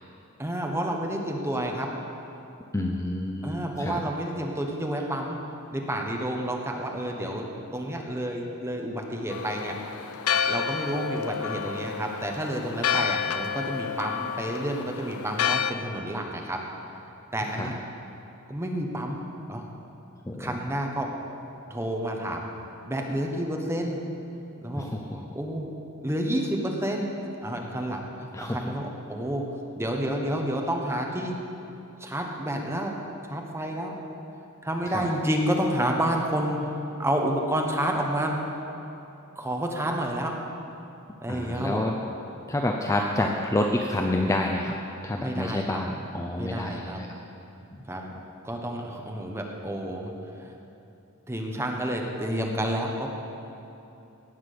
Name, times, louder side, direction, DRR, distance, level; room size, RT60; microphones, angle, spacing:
voice 1, 0.4-1.9 3.4-5.4 5.7-7.5 7.7-9.8 10.4-16.6 17.3-17.8 18.5-19.2 19.5-19.6 20.4-21.1 21.7-22.5 22.9-24.0 24.6-24.8 25.1-25.7 26.0-27.1 27.4-29.4 29.7-31.4 32.0-32.9 33.3-34.0 34.6-36.7 37.0-38.4 39.3-40.3 41.2-41.8 45.2-45.8 46.4-47.0 47.9-48.0 48.4-50.1 50.4-50.5 51.3-53.1, right 1 dB, 10° right, 1 dB, 1.2 m, -29 dB
voice 2, 2.7-4.0 17.5-17.7 20.3-20.6 24.8-25.3 28.3-28.8 34.9-35.1 41.3-42.0 42.5-44.8 45.0-47.1 47.7-48.2, left 1 dB, 15° left, 1 dB, 0.5 m, -29 dB
Church bell, 9.3-15.7, left 7 dB, 70° left, 0.5 m, -29 dB
17.5 x 6.1 x 6.8 m, 2.9 s
head